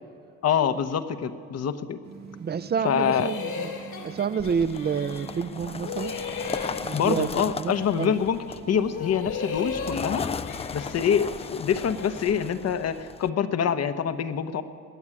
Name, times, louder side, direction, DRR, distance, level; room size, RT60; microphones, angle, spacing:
voice 1, 0.4-2.0 2.8-3.3 6.9-10.3 10.7-14.6, left 7 dB, 55° left, 10 dB, 1.0 m, -25 dB
sound 1, 2.0-9.2, right 6 dB, 65° right, 1.9 m, -44 dB
voice 2, 2.4-3.7 4.0-6.1 6.8-7.3 7.6-8.1, right 6 dB, 35° right, 16 dB, 0.5 m, -28 dB
sound 2, 2.8-5.5 5.8-8.4 8.8-12.6, left 5 dB, 75° left, 2.3 m, -37 dB
sound 3, 4.4-13.3, left 5 dB, 20° left, 0.4 m, -37 dB
20.5 x 7.2 x 9.8 m, 2.5 s
cardioid pair, 90°, 30 cm